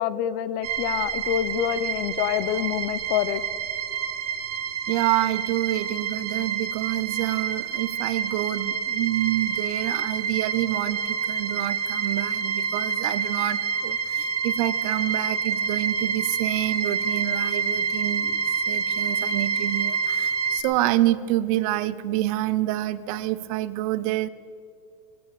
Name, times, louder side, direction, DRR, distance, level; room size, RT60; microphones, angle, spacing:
voice 1, 0.0-3.4, left 11 dB, 55° left, 17 dB, 0.8 m, -26 dB
sound 1, 0.6-20.6, right 6 dB, 90° right, 1.0 m, -28 dB
voice 2, 4.9-24.3, right 15 dB, 65° right, 15 dB, 0.8 m, -27 dB
21.0 x 8.6 x 7.0 m, 2.4 s
supercardioid pair, 120°, 20 cm